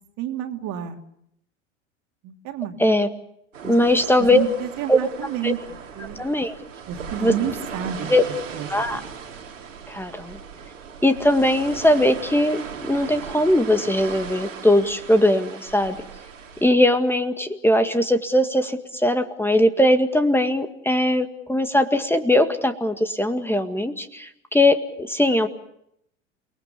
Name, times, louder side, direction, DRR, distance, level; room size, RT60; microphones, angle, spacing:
voice 1, 0.2-1.0 2.2-2.8 3.6-3.9 4.2-5.6 5.9-6.2 6.9-9.1, right 10 dB, 50° right, 5 dB, 3.0 m, -30 dB
sound 1, 3.5-16.7, right 6 dB, 85° right, 3.3 m, -37 dB
voice 2, 3.6-4.4 4.9-5.0 5.4-5.5 6.2-6.5 7.2-7.3 8.1-8.2 8.7-9.0 9.9-10.4 11.0-16.0 16.6-25.5, left 1 dB, 5° left, 7 dB, 1.9 m, -20 dB
29.5 x 20.5 x 7.0 m, 0.76 s
hypercardioid pair, 80°, 37 cm